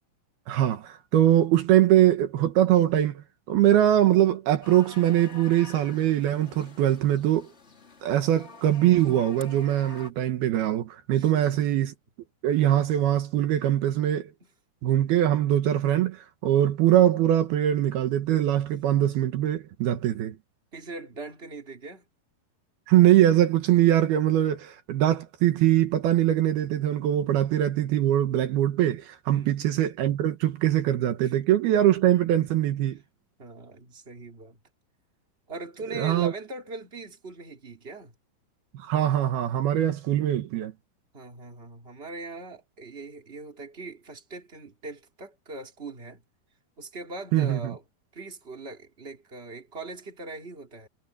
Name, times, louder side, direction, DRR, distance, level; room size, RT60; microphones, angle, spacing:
voice 1, 0.5-7.5 8.0-11.9 12.4-14.3 14.8-20.4 22.9-33.0 35.9-36.3 38.7-40.7 47.3-47.6, right 12 dB, 75° right, 3.2 m, -22 dB
sound 1, 4.6-10.1, left 2 dB, 20° left, 2.0 m, -47 dB
voice 2, 11.1-11.6 14.4-14.5 20.7-22.0 29.3-29.5 31.2-31.3 33.4-34.6 35.5-38.1 41.1-46.2 46.8-47.8 48.1-50.9, right 3 dB, 15° right, 3.4 m, -41 dB
omnidirectional pair, 4.6 m